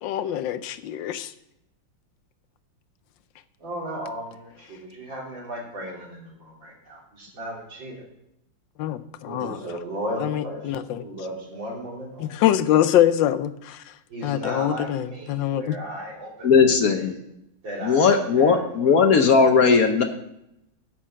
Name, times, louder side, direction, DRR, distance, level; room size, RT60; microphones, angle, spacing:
voice 1, 0.0-1.3 8.8-9.6 10.2-10.8 12.2-13.5 14.2-15.8, left 11 dB, 75° left, 13 dB, 1.3 m, -23 dB
voice 2, 3.6-8.1 9.3-12.4 14.1-17.1 17.6-19.3, equal, 80° right, -3 dB, 3.8 m, -36 dB
voice 3, 16.4-17.2 17.8-20.0, left 5 dB, 60° left, 6 dB, 1.1 m, -18 dB
10.0 x 6.2 x 7.4 m, 0.82 s
omnidirectional pair, 2.1 m